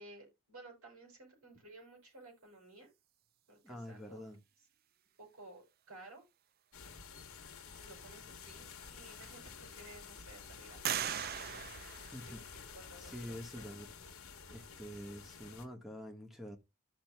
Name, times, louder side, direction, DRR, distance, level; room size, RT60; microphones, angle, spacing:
voice 1, 0.0-2.9 3.5-4.2 5.2-6.2 7.7-11.8 12.4-12.5 12.7-13.8 15.3-15.4, right 2 dB, 75° right, 5.9 m, -56 dB
voice 2, 3.6-4.4 12.0-12.4 13.0-13.9 14.5-16.6, equal, ahead, 1.3 m, -47 dB
sound 1, 6.7-15.7, left 6 dB, 75° left, 1.3 m, -51 dB
sound 2, 8.6-8.7 9.3-9.9 10.8-12.8, right 9 dB, 45° right, 0.4 m, -40 dB
14.0 x 6.0 x 2.2 m
head